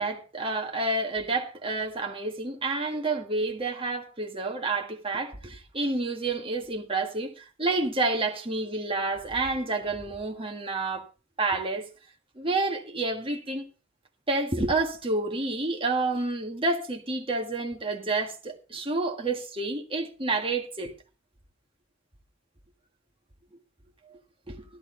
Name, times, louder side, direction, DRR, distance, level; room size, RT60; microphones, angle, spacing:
voice 1, 0.0-11.1 11.4-11.9 12.4-13.7 14.3-20.9 24.5-24.6, right 3 dB, 30° right, 1.8 m, -29 dB
13.5 x 11.5 x 3.9 m
head